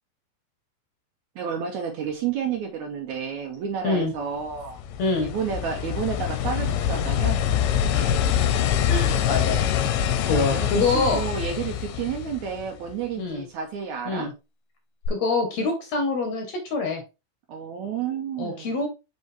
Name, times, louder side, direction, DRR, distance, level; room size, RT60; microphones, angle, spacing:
voice 1, 1.4-4.8 5.2-7.4 10.3-14.3 17.5-18.8, right 7 dB, 70° right, 1.9 m, -31 dB
sound 1, 4.4-12.9 15.1-15.2, left 9 dB, 80° left, 2.2 m, -25 dB
voice 2, 8.9-9.6 10.3-11.3 13.2-13.4 14.1-14.3 15.1-17.0 18.4-18.9, left 3 dB, 65° left, 1.9 m, -25 dB
5.4 x 5.3 x 3.3 m
omnidirectional pair, 4.1 m